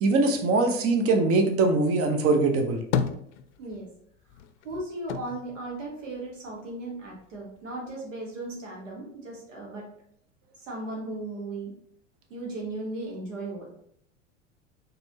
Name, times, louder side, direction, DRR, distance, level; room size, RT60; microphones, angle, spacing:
voice 1, 0.0-2.8, right 3 dB, 40° right, 5 dB, 0.8 m, -22 dB
sound 1, 2.5-4.0 4.3-6.7 7.0-7.9, left 7 dB, 75° left, 0.5 m, -33 dB
voice 2, 3.6-3.9 4.6-9.9 10.6-11.7 12.3-13.7, right 2 dB, 85° right, -2 dB, 1.3 m, -36 dB
4.1 x 3.3 x 2.8 m, 0.68 s
hypercardioid pair, 85°, 37 cm